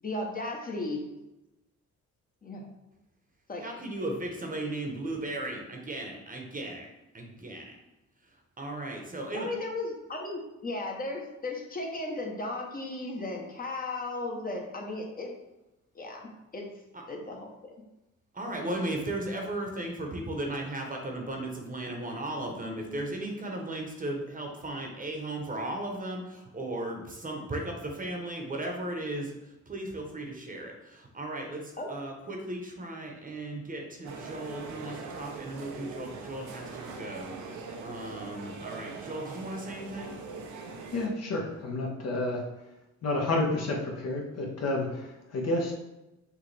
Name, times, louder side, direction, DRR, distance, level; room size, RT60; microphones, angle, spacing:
voice 1, 0.0-1.0 2.4-2.7 3.5-3.6 9.3-15.3 15.9-16.7 17.1-17.7 31.8-31.9, left 2 dB, 30° left, 1 dB, 1.0 m, -35 dB
voice 2, 3.6-6.9 7.1-7.8 8.2-9.5 16.9-17.0 18.3-40.1, right 1 dB, 25° right, 1 dB, 1.0 m, -36 dB
sound 1, 34.0-41.1, right 4 dB, 70° right, 0.7 m, -42 dB
voice 3, 40.9-42.4 43.0-45.7, left 2 dB, 55° left, -1 dB, 1.2 m, -30 dB
6.4 x 2.5 x 3.3 m, 0.97 s
cardioid pair, 90°, 30 cm